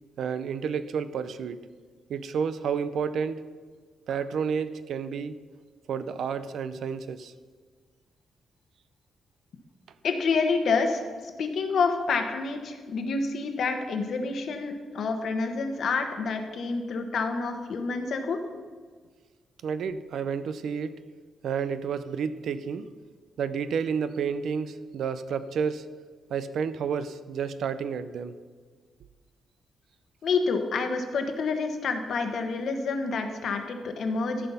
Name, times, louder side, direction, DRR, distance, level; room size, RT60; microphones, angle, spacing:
voice 1, 0.2-1.7 2.1-3.4 4.1-5.4 5.9-7.3 19.6-20.9 21.4-22.9 23.4-25.9 26.3-28.3, right 6 dB, 70° right, 13 dB, 0.5 m, -30 dB
voice 2, 10.0-18.4 30.2-34.5, left 4 dB, 60° left, 6 dB, 1.1 m, -28 dB
14.0 x 5.6 x 5.6 m, 1.5 s
cardioid pair, 145°, 0 cm